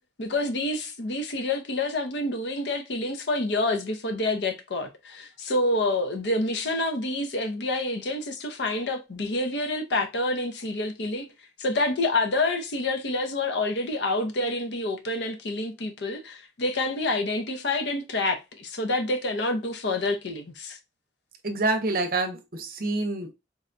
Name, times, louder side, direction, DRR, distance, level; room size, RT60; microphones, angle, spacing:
voice 1, 0.2-11.3 11.6-20.8, left 2 dB, 65° left, 0.6 m, -28 dB
voice 2, 21.4-23.3, right 2 dB, 50° right, 0.6 m, -27 dB
4.0 x 2.2 x 2.5 m
head